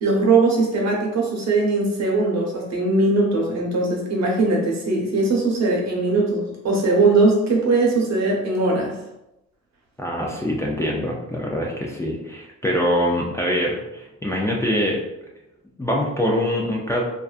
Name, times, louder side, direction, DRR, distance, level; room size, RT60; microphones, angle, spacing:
voice 1, 0.0-8.9, right 3 dB, 60° right, -2 dB, 0.8 m, -20 dB
voice 2, 10.0-15.0 15.8-17.0, equal, 10° left, -3 dB, 0.4 m, -24 dB
2.5 x 2.2 x 2.4 m, 0.91 s
cardioid pair, 90°, 30 cm